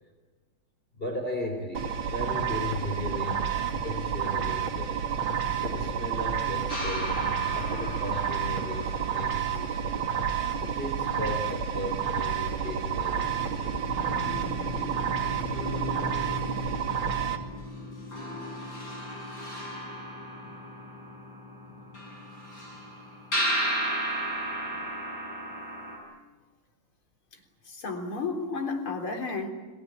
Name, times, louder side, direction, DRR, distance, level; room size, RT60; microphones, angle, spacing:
voice 1, 0.9-5.2 5.6-7.2 7.5-10.1 10.6-13.8, left 1 dB, 25° left, 3 dB, 3.8 m, -36 dB
sound 1, 1.7-17.4, right 7 dB, 75° right, 3.2 m, -30 dB
sound 2, 6.7-11.6 13.1-13.2 13.5-26.0, equal, 50° left, 8.4 m, -35 dB
voice 2, 27.7-29.5, left 4 dB, 85° left, 2 dB, 4.5 m, -32 dB
29.5 x 19.5 x 8.8 m, 1.3 s
omnidirectional pair, 2.3 m